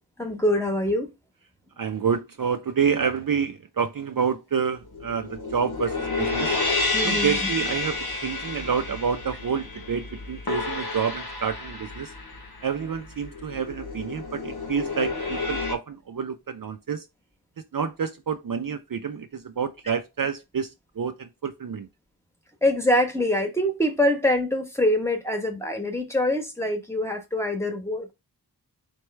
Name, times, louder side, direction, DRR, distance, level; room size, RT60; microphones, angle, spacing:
voice 1, 0.2-1.1 6.9-7.5 22.6-28.1, left 1 dB, 5° left, 1.1 m, -24 dB
voice 2, 1.8-6.6 7.0-12.1 12.6-17.1 17.7-21.9, right 6 dB, 55° right, 0.5 m, -28 dB
sound 1, 4.8-15.7, left 3 dB, 60° left, 1.2 m, -30 dB
4.4 x 3.1 x 3.2 m
wide cardioid pair, 65°, 42 cm